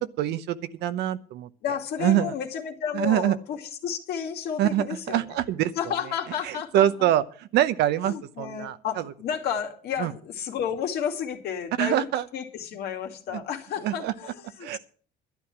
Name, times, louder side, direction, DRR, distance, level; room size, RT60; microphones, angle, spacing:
voice 1, 0.2-1.5 2.0-2.3 2.9-3.4 4.6-5.7 6.4-9.0 10.0-10.1 11.8-12.2 13.3-13.4 13.8-14.1 14.6-14.8, right 12 dB, 80° right, 13 dB, 0.8 m, -25 dB
voice 2, 1.6-5.4 5.8-6.9 8.0-14.8, left 8 dB, 70° left, 3 dB, 2.3 m, -32 dB
12.0 x 9.7 x 6.0 m, 0.43 s
cardioid pair, 110°, 17 cm